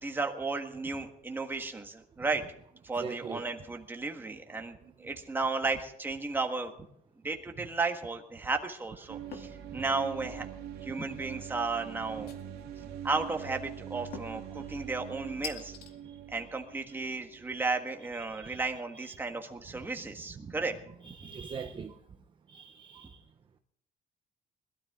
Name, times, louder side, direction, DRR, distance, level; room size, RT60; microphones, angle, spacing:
voice 1, 0.0-2.4 2.8-6.7 7.2-10.5 10.8-12.3 12.8-15.8 16.3-20.8 21.2-21.3, right 3 dB, 15° right, 4 dB, 1.6 m, -34 dB
voice 2, 3.0-3.4 4.8-5.1 9.7-9.8 16.0-16.2 17.5-17.6 18.3-18.6 18.9-19.2 20.4-20.6 21.0-22.0 22.5-23.2, right 5 dB, 30° right, 6 dB, 0.8 m, -43 dB
sound 1, 9.1-17.9, right 9 dB, 85° right, 2.2 m, -43 dB
sound 2, 9.3-9.6 10.1-10.5 12.3-12.8 14.1-14.5 15.4-15.9, left 7 dB, 75° left, 2.2 m, -44 dB
21.0 x 13.0 x 3.6 m, 0.71 s
cardioid pair, 155°, 16 cm